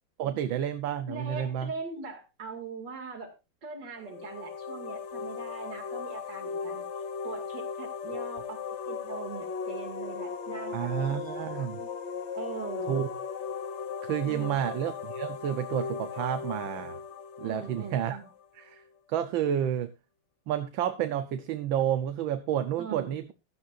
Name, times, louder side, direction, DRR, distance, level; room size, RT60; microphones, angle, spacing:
voice 1, 0.2-1.7 10.7-11.8 12.9-13.1 14.0-17.0 17.4-18.2 18.5-18.8 19.1-19.9 20.5-23.3, right 10 dB, 75° right, 9 dB, 1.6 m, -30 dB
voice 2, 1.1-3.3 3.6-6.8 7.2-11.9 12.3-13.0 14.2-14.8 17.4-18.3 22.8-23.2, right 4 dB, 55° right, 3 dB, 3.0 m, -41 dB
sound 1, 4.0-18.6, left 6 dB, 80° left, 0.6 m, -37 dB
15.5 x 12.5 x 2.5 m, 0.27 s
omnidirectional pair, 2.3 m